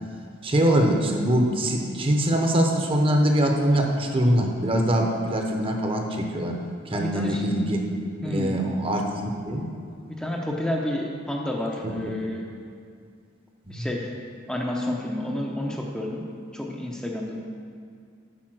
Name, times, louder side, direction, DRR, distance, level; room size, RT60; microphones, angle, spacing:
voice 1, 0.4-6.6 6.9-7.8 8.2-9.7 11.8-12.0 13.7-13.9, equal, 25° right, 2 dB, 0.8 m, -23 dB
voice 2, 6.9-7.4 8.2-8.5 10.1-12.5 13.7-14.1 14.5-16.2 16.5-17.4, left 1 dB, 5° left, -2 dB, 0.6 m, -30 dB
8.8 x 5.5 x 6.1 m, 2.3 s
head